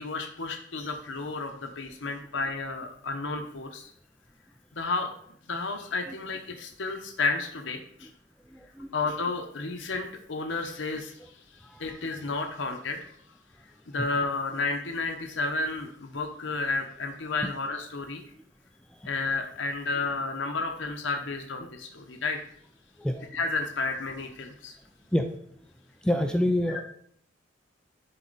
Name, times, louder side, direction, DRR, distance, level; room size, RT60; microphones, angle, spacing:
voice 1, 0.0-3.9 4.7-5.1 5.5-8.1 8.9-13.1 13.9-18.2 19.0-22.4 23.3-24.8 26.7-26.8, left 3 dB, 70° left, 3 dB, 0.9 m, -32 dB
voice 2, 8.5-9.0 11.6-12.1 19.0-19.1 23.0-23.4 25.1-25.3 26.0-26.8, left 1 dB, 5° left, 6 dB, 0.4 m, -28 dB
11.0 x 4.2 x 4.0 m, 0.65 s
head